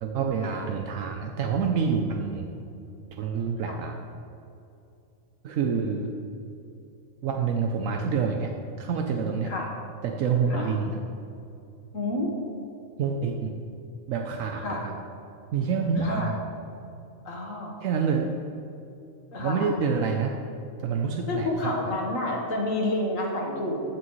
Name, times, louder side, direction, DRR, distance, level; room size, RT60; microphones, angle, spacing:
voice 1, 0.0-2.5 3.2-4.0 5.4-6.1 7.2-8.5 8.8-9.5 10.0-11.0 13.0-13.5 14.1-14.9 15.5-16.4 17.8-18.4 19.4-20.4 20.8-21.8, right 5 dB, 80° right, 3 dB, 1.0 m, -27 dB
voice 2, 11.9-12.3 14.6-14.8 16.0-16.3 17.3-17.8 19.3-19.7 21.3-23.8, left 2 dB, 75° left, -1 dB, 1.7 m, -29 dB
14.5 x 6.1 x 3.1 m, 2.7 s
omnidirectional pair, 1.4 m